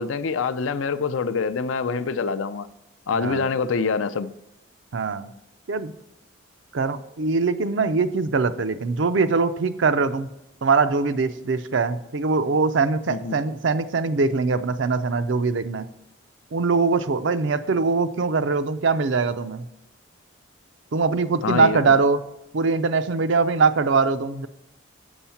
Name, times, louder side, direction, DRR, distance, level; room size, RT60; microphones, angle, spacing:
voice 1, 0.0-2.7 3.1-4.3 13.1-13.4 21.4-21.9, left 5 dB, 75° left, 0.5 m, -25 dB
voice 2, 3.1-3.5 4.9-5.3 5.7-5.9 6.7-10.3 10.6-15.9 16.5-19.7 20.9-22.2 22.5-24.5, right 4 dB, 65° right, 0.5 m, -22 dB
7.2 x 6.3 x 5.7 m
head